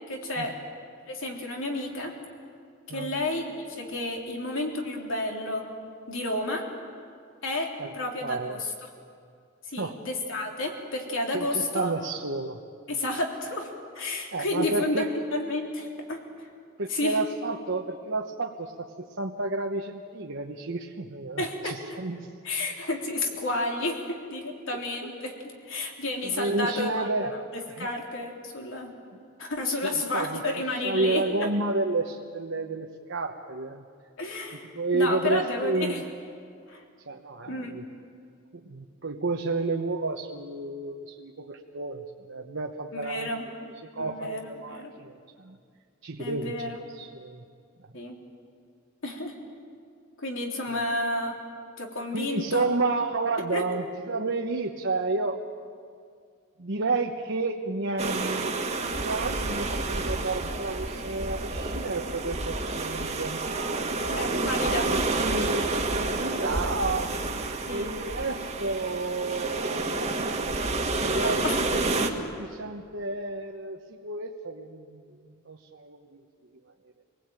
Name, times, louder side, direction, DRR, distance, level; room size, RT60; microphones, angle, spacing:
voice 1, 0.1-0.6 1.1-2.1 2.9-5.7 6.1-6.6 7.4-8.9 9.7-11.9 12.9-16.2 16.9-17.2 21.4-22.0 22.4-25.4 25.6-28.9 29.4-31.5 34.2-36.0 36.7-36.8 37.5-37.7 42.9-43.5 44.0-44.9 46.2-46.8 47.9-48.2 49.0-49.4 50.2-51.4 51.8-52.7 53.5-53.7 64.1-64.8 67.7-68.0 71.1-71.8, left 2 dB, 65° left, 1 dB, 3.5 m, -31 dB
voice 2, 8.2-8.6 9.8-10.0 11.3-12.6 14.3-15.1 16.8-22.3 26.2-27.3 27.8-27.9 29.9-30.4 30.8-33.8 34.7-36.0 37.1-37.8 38.6-43.3 43.6-45.6 46.0-47.4 50.7-50.8 52.1-55.4 56.6-67.1 67.7-70.1 70.7-71.5 72.1-75.2 75.5-76.2, right 3 dB, 60° right, 2 dB, 1.1 m, -31 dB
sound 1, 58.0-72.1, right 2 dB, 30° right, 1.7 m, -29 dB
27.0 x 19.0 x 9.0 m, 2.2 s
head